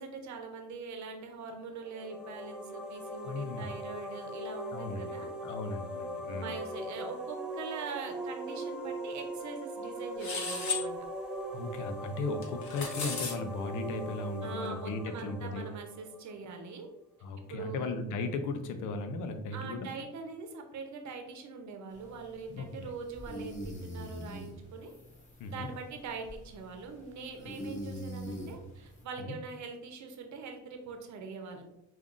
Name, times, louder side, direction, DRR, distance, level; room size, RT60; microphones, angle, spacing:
voice 1, 0.0-5.3 6.3-10.9 14.4-16.9 17.5-17.9 19.5-24.9 25.5-31.6, right 4 dB, 70° right, 4 dB, 0.8 m, -43 dB
sound 1, 1.8-16.5, right 1 dB, 5° right, 0.5 m, -40 dB
voice 2, 3.2-3.7 4.7-5.1 5.4-6.5 11.5-15.7 17.2-19.9 22.5-22.9 25.4-25.7 29.2-29.3, left 3 dB, 85° left, 8 dB, 0.6 m, -36 dB
sound 2, 10.2-10.8 12.4-13.3, left 4 dB, 65° left, 1.0 m, -34 dB
sound 3, 21.9-29.0, equal, 25° left, 1.3 m, -44 dB
5.2 x 2.5 x 2.5 m, 0.87 s
cardioid pair, 90°, 30 cm